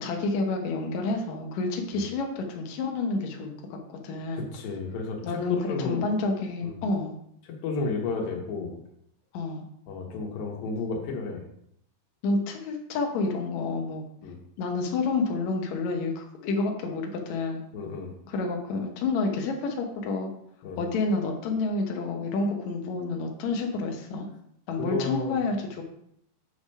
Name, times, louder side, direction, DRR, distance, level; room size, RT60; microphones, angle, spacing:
voice 1, 0.0-4.5 5.2-7.2 9.3-9.6 12.2-14.0 14.6-17.6 18.3-20.3 20.8-24.3 24.7-25.8, left 3 dB, 70° left, 2 dB, 2.0 m, -29 dB
voice 2, 4.3-5.4 5.7-6.1 6.6-6.7 7.6-8.8 9.9-11.4 14.2-14.4 17.7-18.1 20.6-20.8 24.8-25.4, left 4 dB, 85° left, 1 dB, 3.0 m, -32 dB
8.1 x 3.3 x 5.4 m, 0.74 s
omnidirectional pair, 3.9 m